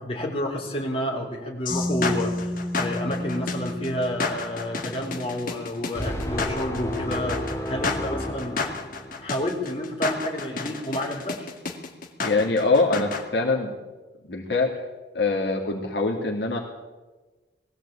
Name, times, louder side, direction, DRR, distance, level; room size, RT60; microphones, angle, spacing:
voice 1, 0.0-7.4 7.7-8.6 9.2-11.5, left 1 dB, 30° left, -1 dB, 4.4 m, -30 dB
sound 1, 1.7-13.2, left 4 dB, 50° left, 2.2 m, -31 dB
sound 2, 1.7-5.5, left 1 dB, 25° right, 3.3 m, -32 dB
sound 3, 5.9-9.4, equal, 15° left, 2.2 m, -32 dB
voice 2, 12.2-13.7 14.3-14.7 15.1-16.6, left 3 dB, 65° left, 1 dB, 2.5 m, -23 dB
21.0 x 15.5 x 8.6 m, 1.2 s
head